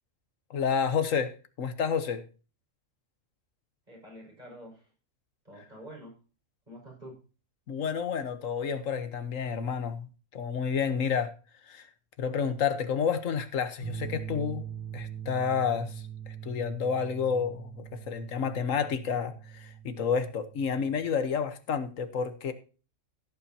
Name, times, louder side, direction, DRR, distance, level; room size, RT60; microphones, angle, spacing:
voice 1, 0.5-2.2 7.7-11.3 11.7-11.9 12.2-14.7 14.9-22.5, left 6 dB, 80° left, 1.5 m, -30 dB
voice 2, 3.9-4.9 5.4-6.2 6.7-7.2, equal, 35° right, 6.1 m, -47 dB
sound 1, 13.8-21.0, right 9 dB, 60° right, 4.4 m, -42 dB
16.0 x 8.5 x 2.8 m
omnidirectional pair, 1.3 m